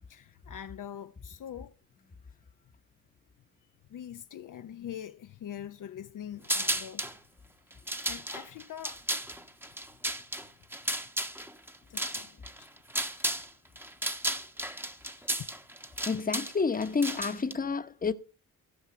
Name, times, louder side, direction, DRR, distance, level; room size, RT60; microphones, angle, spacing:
voice 1, 0.1-1.8 3.9-7.2 8.0-9.0 11.9-12.7 13.0-13.5 15.0-15.5, left 10 dB, 60° left, 0.7 m, -44 dB
sound 1, 6.4-7.2 7.7-13.5 13.8-17.5, right 1 dB, 5° right, 1.0 m, -34 dB
voice 2, 16.1-18.1, left 5 dB, 25° left, 1.0 m, -29 dB
16.0 x 5.6 x 5.9 m
cardioid pair, 75°, 36 cm